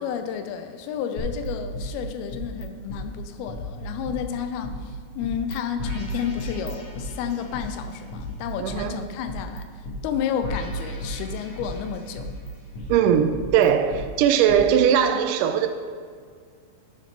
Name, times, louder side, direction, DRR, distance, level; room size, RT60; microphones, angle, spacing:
voice 1, 0.0-12.3, left 8 dB, 90° left, 8 dB, 2.6 m, -31 dB
sound 1, 1.2-2.6 2.9-3.0 3.5-4.7 5.2-5.5 5.8-7.6 8.1-9.6 9.8-10.0 10.4-11.8 12.2-14.0 14.5-14.6, equal, 50° left, 2.1 m, -34 dB
voice 2, 8.6-9.0 12.9-15.7, right 8 dB, 85° right, 8 dB, 1.9 m, -20 dB
9.8 x 4.5 x 5.9 m, 2.1 s
omnidirectional pair, 4.3 m